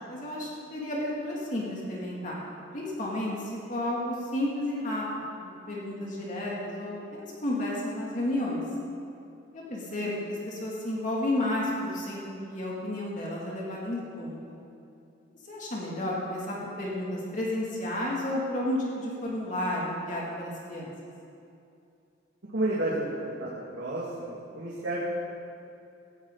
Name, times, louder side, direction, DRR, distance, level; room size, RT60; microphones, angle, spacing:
voice 1, 0.1-2.4 2.7-5.0 5.4-8.6 9.5-14.6 15.4-20.9, left 1 dB, 40° left, -5 dB, 2.8 m, -32 dB
voice 2, 22.5-25.1, right 1 dB, 70° right, -7 dB, 2.6 m, -31 dB
17.5 x 16.0 x 4.1 m, 2.6 s
head